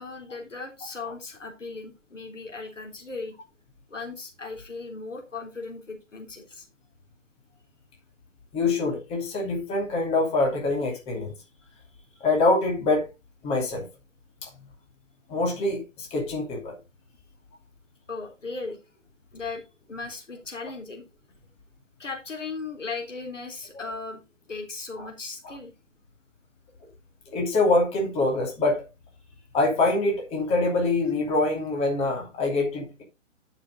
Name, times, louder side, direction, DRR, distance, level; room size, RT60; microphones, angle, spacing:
voice 1, 0.0-3.3 3.9-6.7 12.1-12.3 18.1-18.8 19.3-19.6 19.9-21.0 22.0-24.2 24.5-25.7, left 4 dB, 70° left, 3.4 m, -37 dB
voice 2, 8.5-11.3 12.2-13.0 13.4-13.9 14.4-14.5 15.3-16.8 25.0-25.1 25.4-25.6 27.3-28.8 29.5-33.0, left 2 dB, 15° left, 2.7 m, -24 dB
10.5 x 6.2 x 3.9 m
figure-of-eight pair, 130°, 38 cm